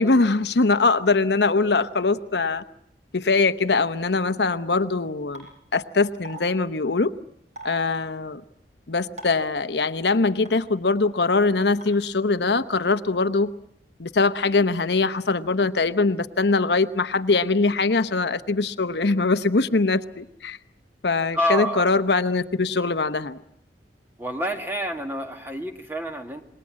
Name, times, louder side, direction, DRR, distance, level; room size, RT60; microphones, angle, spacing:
voice 1, 0.0-2.6 3.1-5.5 5.7-7.1 7.6-8.4 8.9-13.5 14.0-20.6 21.0-23.4, left 3 dB, 75° left, 10 dB, 0.9 m, -22 dB
sound 1, 5.3-5.4 6.2-6.4 7.6-7.7 9.2-9.4 10.4-10.5 11.8-11.9, right 1 dB, 40° right, 6.3 m, -38 dB
voice 2, 21.3-21.9 24.2-26.4, equal, 10° right, 4 dB, 1.9 m, -27 dB
27.5 x 21.0 x 7.5 m, 0.72 s
head